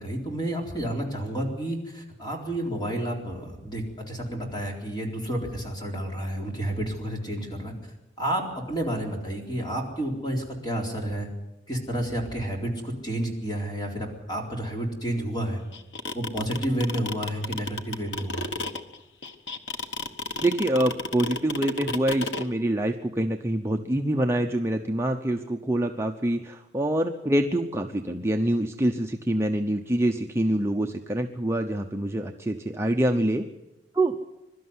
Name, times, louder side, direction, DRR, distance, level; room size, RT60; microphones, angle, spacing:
voice 1, 0.0-7.7 8.2-11.3 11.7-15.6 16.1-18.5, right 1 dB, 25° left, 1 dB, 3.9 m, -30 dB
sound 1, 15.7-22.4, left 3 dB, 85° left, 1.3 m, -31 dB
voice 2, 20.4-33.4 33.9-34.1, right 1 dB, 15° right, 3 dB, 0.8 m, -25 dB
23.0 x 12.5 x 9.6 m, 0.97 s
head